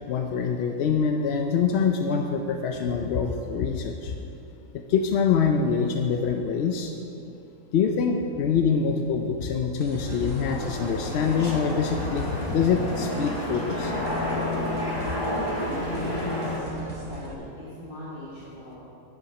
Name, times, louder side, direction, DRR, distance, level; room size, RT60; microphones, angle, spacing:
voice 1, 0.1-4.1 4.7-6.9 7.7-13.9, left 6 dB, 65° left, 3 dB, 0.6 m, -25 dB
sound 1, 9.8-17.3, right 1 dB, 45° right, 1.5 m, -42 dB
sound 2, 9.9-16.6, left 1 dB, 15° left, 1.5 m, -30 dB
voice 2, 15.3-18.8, left 1 dB, 35° left, -8 dB, 1.9 m, -39 dB
10.0 x 7.9 x 5.8 m, 2.9 s
omnidirectional pair, 1.6 m